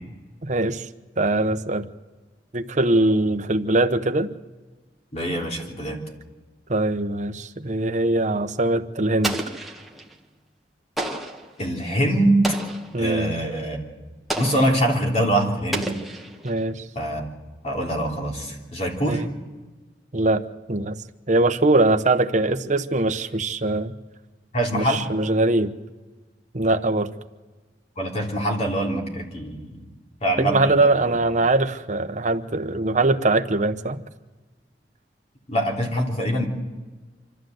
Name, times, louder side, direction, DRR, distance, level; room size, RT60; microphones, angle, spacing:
voice 1, 0.4-0.9 1.2-1.9 2.5-4.3 6.7-9.4 12.9-13.3 16.4-16.8 19.0-19.3 20.1-20.4 20.7-21.0 21.3-23.9 24.7-25.7 26.5-27.1 30.4-34.0, right 2 dB, 45° right, 7 dB, 1.0 m, -22 dB
voice 2, 5.1-6.0 11.6-12.6 13.0-13.8 14.4-15.9 16.9-17.2 17.6-19.2 24.5-25.0 28.0-29.8 30.2-30.9 35.5-36.5, right 1 dB, 40° left, 0 dB, 3.4 m, -24 dB
Explosion, 9.2-10.1 11.0-11.5 12.4-13.0 14.3-14.8 15.7-16.6, right 1 dB, ahead, 1.6 m, -30 dB
25.5 x 14.0 x 7.9 m, 1.3 s
head